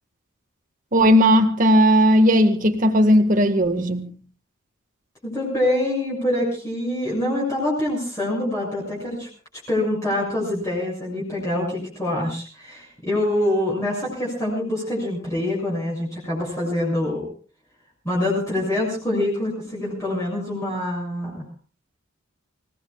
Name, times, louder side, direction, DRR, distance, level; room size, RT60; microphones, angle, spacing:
voice 1, 0.9-4.1, equal, 40° right, 1.8 m, -16 dB
voice 2, 5.2-9.3 9.7-17.3 18.0-21.5, left 1 dB, 15° left, 7.0 m, -25 dB
29.0 x 18.0 x 2.4 m
head